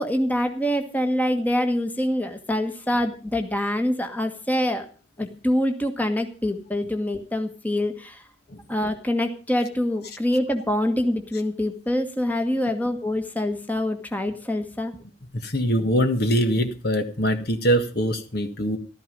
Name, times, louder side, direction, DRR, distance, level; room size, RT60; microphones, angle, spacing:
voice 1, 0.0-4.8 5.2-8.2 8.7-15.0, left 1 dB, 10° left, 6 dB, 1.5 m, -25 dB
voice 2, 15.4-18.8, equal, 55° left, 7 dB, 1.8 m, -23 dB
15.0 x 12.5 x 5.3 m, 0.36 s
head